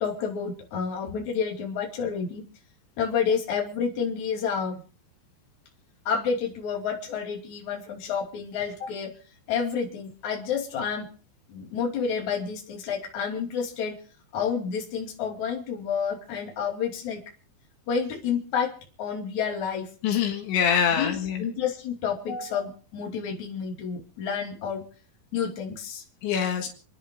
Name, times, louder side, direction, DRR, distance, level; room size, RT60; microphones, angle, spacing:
voice 1, 0.0-2.4 3.0-4.8 6.1-9.1 9.5-11.1 11.5-13.9 14.3-17.2 17.9-19.9 21.0-24.8 25.3-26.0, left 6 dB, 45° left, 0 dB, 3.7 m, -29 dB
voice 2, 20.0-21.5 26.2-26.7, left 8 dB, 75° left, 3 dB, 3.8 m, -24 dB
29.0 x 10.0 x 3.8 m, 0.41 s
omnidirectional pair, 5.4 m